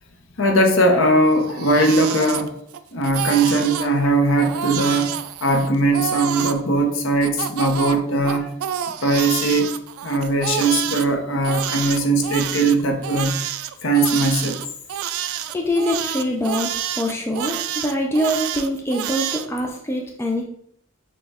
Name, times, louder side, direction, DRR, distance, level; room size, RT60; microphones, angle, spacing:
voice 1, 0.4-2.5 2.9-5.1 5.4-8.5 9.0-9.7 10.0-13.3 13.8-14.6, right 2 dB, 70° left, 5 dB, 0.7 m, -19 dB
Crying sobbing, 1.3-2.8 3.0-3.9 4.4-6.6 7.2-11.1 11.4-19.5, right 10 dB, 90° right, 0.3 m, -28 dB
voice 2, 15.5-20.4, equal, 10° left, 1 dB, 0.4 m, -24 dB
6.3 x 2.2 x 3.5 m, 0.69 s
head